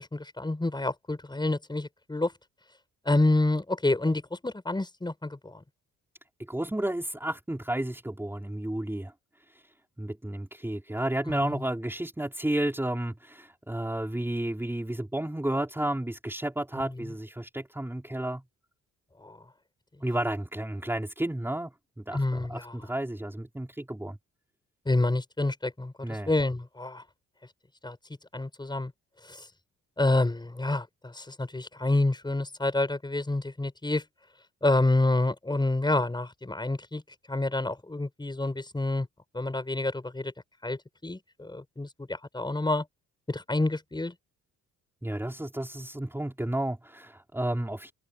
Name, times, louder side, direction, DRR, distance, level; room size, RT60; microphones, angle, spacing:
voice 1, 0.0-2.3 3.1-5.6 11.3-11.6 17.0-17.1 19.2-19.4 22.1-22.8 24.9-27.0 27.8-28.0 28.3-28.9 29.3-29.4 30.0-34.0 34.6-37.0 37.3-39.1 39.3-40.3 40.6-42.8 43.3-44.1, left 2 dB, 15° left, 7.4 m, -28 dB
voice 2, 6.5-9.1 9.5-9.6 10.0-18.4 20.0-24.2 26.0-26.3 45.0-47.9, right 1 dB, 5° right, 4.4 m, -32 dB
open air
cardioid pair, 90°, 30 cm